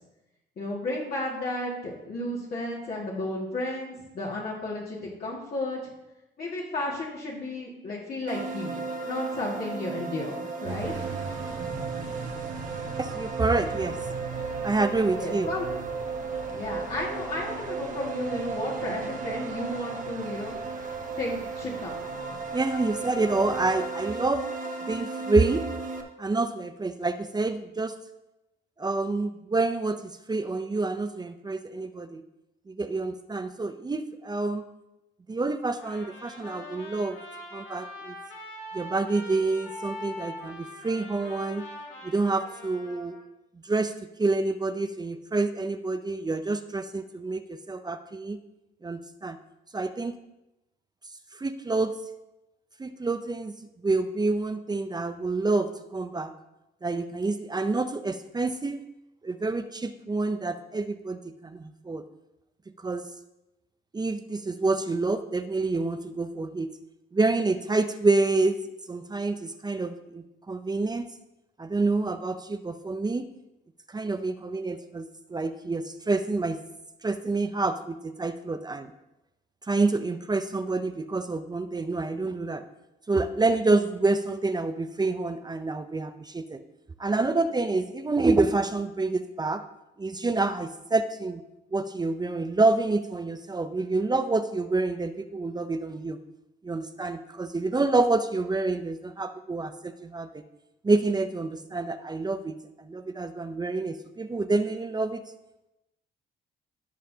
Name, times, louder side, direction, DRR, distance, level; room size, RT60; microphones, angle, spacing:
voice 1, 0.6-5.8 6.4-8.8 9.0-11.1 15.2-15.7 16.5-20.6 21.2-22.1, left 2 dB, 50° left, -5 dB, 2.0 m, -33 dB
sound 1, 8.3-26.0, right 4 dB, 40° right, 1.2 m, -35 dB
sound 2, 10.6-23.7, right 5 dB, 70° right, 1.6 m, -42 dB
voice 2, 13.0-14.0 14.6-15.5 22.5-24.5 24.9-25.7 26.2-27.9 28.8-32.2 32.7-34.6 35.3-37.2 37.5-38.1 38.7-41.6 42.0-43.2 43.6-43.9 44.2-48.4 48.8-49.4 49.7-50.2 51.4-51.9 52.8-53.5 53.8-56.3 56.8-58.8 59.2-62.0 62.8-63.1 63.9-66.7 67.1-68.6 68.9-71.1 71.6-73.3 73.9-75.0 75.3-76.6 77.0-78.9 79.7-82.6 83.1-86.6 87.0-89.6 90.0-91.4 91.7-96.2 96.6-100.4 100.8-105.2, right 3 dB, 20° right, 9 dB, 0.6 m, -27 dB
Trumpet, 35.8-43.2, left 1 dB, 85° left, 1.8 m, -42 dB
16.0 x 5.7 x 2.8 m, 0.94 s
cardioid pair, 90°, 20 cm